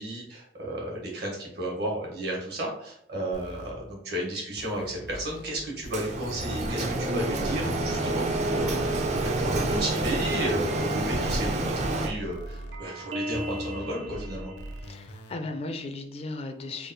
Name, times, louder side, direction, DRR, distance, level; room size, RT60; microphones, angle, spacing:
voice 1, 0.0-14.5, right 1 dB, 60° right, -2 dB, 1.5 m, -33 dB
sound 1, 3.3-3.7 4.6-5.5 5.8-6.8 7.6-9.7 10.3-11.4 11.8-12.8 13.3-15.3, left 1 dB, 85° left, 0.6 m, -42 dB
Printer, 5.9-12.1, right 2 dB, 40° right, 0.5 m, -28 dB
sound 2, 8.3-15.0, right 1 dB, 80° right, 0.8 m, -41 dB
voice 2, 14.8-16.9, left 2 dB, 35° left, 6 dB, 0.4 m, -36 dB
3.5 x 2.3 x 4.0 m, 0.71 s
head